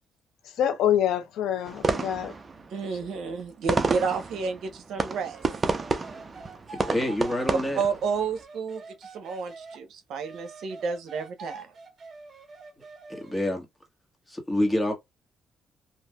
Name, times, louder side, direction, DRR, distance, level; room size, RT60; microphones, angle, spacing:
voice 1, 0.4-2.3 2.9-3.1, left 10 dB, 85° left, 0.7 m, -26 dB
sound 1, 1.7-8.4, right 4 dB, 35° right, 0.6 m, -30 dB
voice 2, 2.7-5.4 7.8-11.7, right 5 dB, 75° right, 0.8 m, -31 dB
sound 2, 5.3-9.8 10.2-13.4, right 4 dB, 50° right, 1.1 m, -46 dB
voice 3, 6.7-7.8 13.1-13.7 14.3-14.9, left 1 dB, 10° left, 1.4 m, -27 dB
3.1 x 2.5 x 2.2 m
cardioid pair, 90°, 0 cm